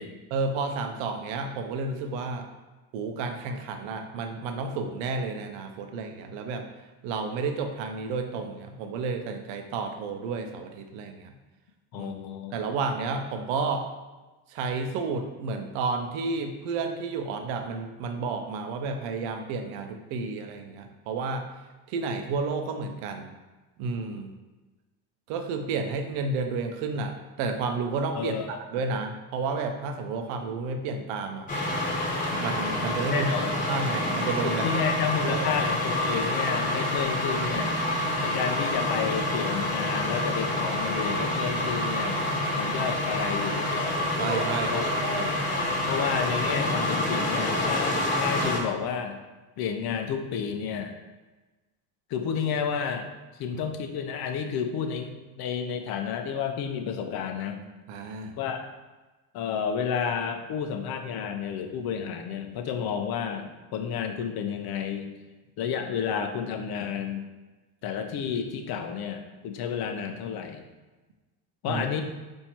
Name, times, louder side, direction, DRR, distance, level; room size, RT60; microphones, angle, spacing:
voice 1, 0.3-2.5 2.9-6.7 7.0-11.3 11.9-12.1 12.5-13.9 14.5-21.5 21.9-23.3 23.8-24.3 25.3-31.5 32.4-33.3 33.7-34.8 35.3-35.5 44.2-44.8 57.9-58.3 71.7-71.8, right 4 dB, 75° right, 5 dB, 0.8 m, -31 dB
voice 2, 11.9-12.6 28.1-28.6 33.1-33.6 34.4-37.8 38.2-42.2 42.6-43.7 44.7-44.8 45.1-45.3 45.9-49.2 49.6-50.9 52.1-53.1 53.4-57.6 58.4-58.7 59.3-65.1 65.6-67.2 67.8-70.6 71.6-72.0, left 7 dB, 50° left, 5 dB, 0.7 m, -31 dB
sound 1, 31.5-48.6, left 1 dB, 15° left, 1.2 m, -27 dB
4.4 x 2.8 x 4.4 m, 1.2 s
supercardioid pair, 90°, 47 cm